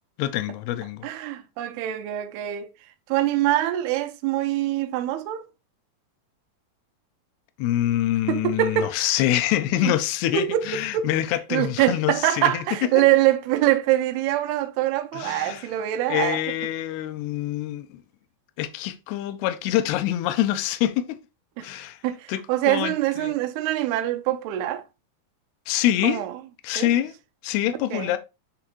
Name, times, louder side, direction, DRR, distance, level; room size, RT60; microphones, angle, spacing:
voice 1, 0.2-1.1 7.6-12.6 15.1-15.6 16.1-18.0 18.6-21.2 21.6-22.0 22.3-22.4 22.7-23.3 25.7-26.2 26.6-27.1 27.4-28.2, left 13 dB, 80° left, 2.6 m, -25 dB
voice 2, 1.0-2.7 3.1-5.5 8.3-9.1 9.8-10.0 10.3-11.1 11.5-16.4 21.6-21.8 22.0-24.8 26.0-26.4 26.8-26.9 27.9-28.2, right 13 dB, 80° right, 2.5 m, -24 dB
9.8 x 3.5 x 3.0 m
omnidirectional pair, 4.9 m